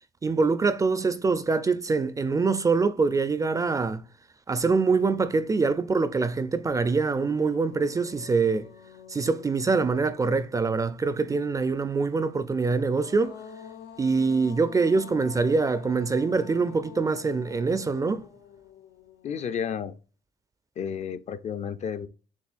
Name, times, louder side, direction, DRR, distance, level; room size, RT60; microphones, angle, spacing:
voice 1, 0.2-4.0 4.5-8.7 9.1-13.4 14.0-18.3, right 4 dB, 20° right, 0.4 m, -24 dB
sound 1, 6.7-6.8 7.2-10.9 12.5-19.8, left 7 dB, 90° left, 0.6 m, -48 dB
voice 2, 19.2-19.9 20.8-22.1, left 7 dB, 45° left, 0.4 m, -32 dB
6.9 x 2.4 x 2.4 m
cardioid pair, 110°, 17 cm